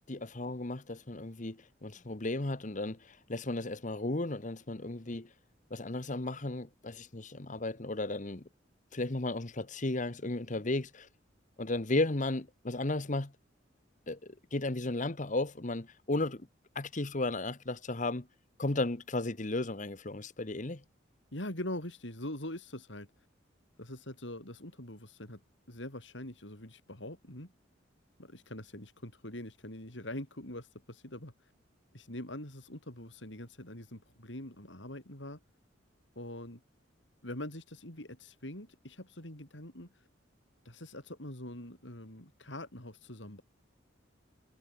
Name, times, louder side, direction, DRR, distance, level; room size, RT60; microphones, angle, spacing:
voice 1, 0.1-5.3 5.7-8.4 8.9-11.1 11.6-13.3 14.1-16.5 16.7-18.3 18.6-20.8, left 2 dB, 40° left, 1.3 m, -34 dB
voice 2, 21.3-23.1 23.8-25.4 25.7-27.5 28.2-31.5 31.9-35.4 36.2-36.6 37.2-40.1 40.7-43.4, left 1 dB, 75° left, 7.0 m, -43 dB
head